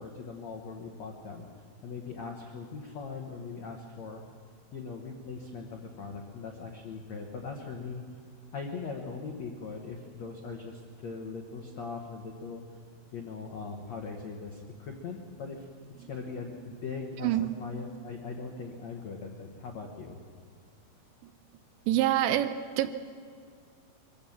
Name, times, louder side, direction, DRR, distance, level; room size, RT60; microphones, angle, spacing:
voice 1, 0.0-1.5 1.8-4.2 4.7-8.0 8.5-12.6 13.1-15.7 16.0-17.3 17.6-20.2, left 4 dB, 85° left, 1 dB, 1.5 m, -40 dB
voice 2, 21.9-22.9, right 12 dB, 80° right, 10 dB, 2.9 m, -26 dB
23.0 x 16.0 x 7.3 m, 2.2 s
omnidirectional pair, 5.5 m